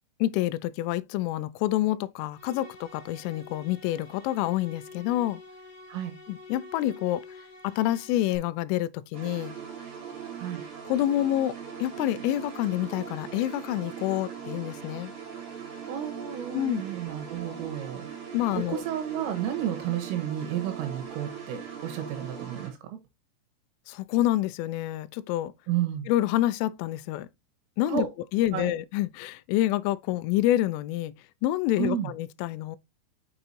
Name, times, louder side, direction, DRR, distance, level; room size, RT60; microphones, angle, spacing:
voice 1, 0.2-5.4 6.3-7.2 7.6-9.6 10.9-11.5 11.8-15.1 16.5-16.8 18.3-18.8 23.9-25.5 26.1-27.3 27.8-28.1 28.3-31.1 31.4-32.8, left 14 dB, 85° left, 3.0 m, -27 dB
sound 1, 2.3-8.4, left 3 dB, 55° left, 2.8 m, -48 dB
sound 2, 9.1-22.7, right 7 dB, 50° right, 3.8 m, -40 dB
voice 2, 15.9-18.1 18.6-22.9 25.7-26.1 27.9-28.1 28.5-28.7 31.8-32.1, right 10 dB, 80° right, 4.1 m, -32 dB
6.9 x 6.5 x 2.7 m
omnidirectional pair, 5.9 m